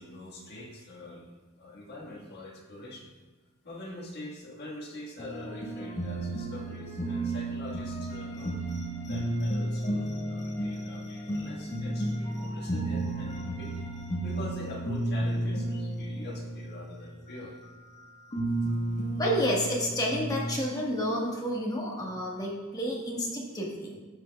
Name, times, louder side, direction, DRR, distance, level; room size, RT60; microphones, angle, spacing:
voice 1, 0.0-3.1 3.6-8.6 9.0-13.8 14.2-17.6, left 1 dB, 50° left, -3 dB, 1.4 m, -44 dB
sound 1, 5.2-18.0 18.3-20.6, right 1 dB, 35° left, 1.0 m, -33 dB
voice 2, 19.2-24.0, equal, 15° left, -2 dB, 1.3 m, -30 dB
13.5 x 5.4 x 2.2 m, 1.3 s
head